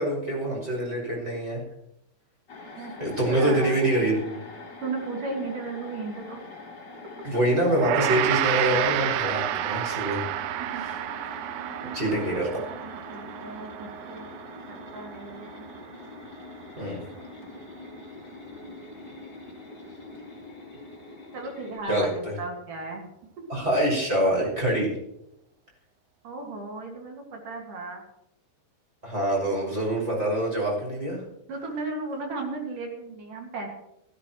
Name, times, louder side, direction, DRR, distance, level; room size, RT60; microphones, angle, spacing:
voice 1, 0.0-1.6 3.0-4.3 7.2-10.2 10.8-11.0 11.9-12.5 16.8-17.0 21.9-22.1 23.5-24.9 29.0-31.2, right 1 dB, 15° right, -3 dB, 6.2 m, -25 dB
sound 1, 2.5-21.8, left 3 dB, 25° left, 4.0 m, -44 dB
voice 2, 3.3-3.8 4.8-6.4 10.6-10.8 11.4-14.3 14.9-15.7 21.3-23.1 23.4-23.5 26.2-28.0 31.5-33.7, right 3 dB, 60° right, 1 dB, 3.4 m, -36 dB
Gong, 7.7-17.1, right 13 dB, 85° right, 2.7 m, -31 dB
16.5 x 16.0 x 3.1 m, 0.82 s
omnidirectional pair, 4.6 m